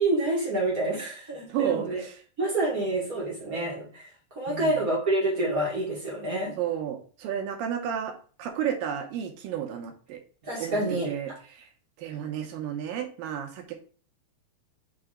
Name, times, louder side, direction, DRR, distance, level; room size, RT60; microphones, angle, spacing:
voice 1, 0.0-2.0 2.4-6.6 10.4-11.1 12.2-12.3, right 2 dB, 45° right, -4 dB, 1.1 m, -28 dB
voice 2, 1.5-2.1 4.5-4.8 6.6-8.1 8.4-10.2 10.6-11.7 12.0-13.7, right 9 dB, 75° right, 4 dB, 2.6 m, -32 dB
6.0 x 3.4 x 4.9 m, 0.41 s
omnidirectional pair, 4.3 m